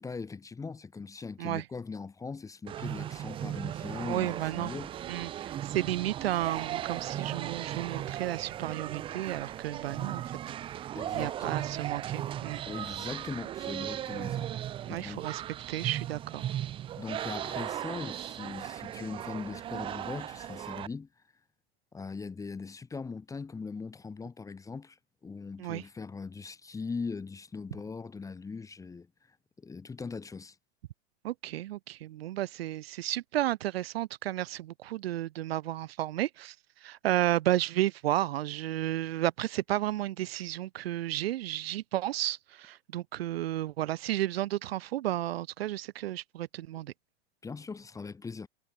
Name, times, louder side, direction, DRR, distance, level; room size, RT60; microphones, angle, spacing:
voice 1, 0.0-5.2 10.9-11.6 12.7-14.5 14.9-15.2 17.0-21.1 21.9-30.6 47.4-48.5, left 4 dB, 10° left, 0.8 m, -40 dB
sound 1, 2.7-20.9, right 11 dB, 15° right, 0.4 m, -37 dB
voice 2, 4.1-4.7 5.1-10.4 10.7-10.8 11.1-12.6 14.1-14.3 14.8-15.4 15.7-16.4 25.6-25.8 31.2-36.6 36.8-46.9, right 14 dB, 65° right, 0.7 m, -32 dB
hypercardioid pair, 100°, 32 cm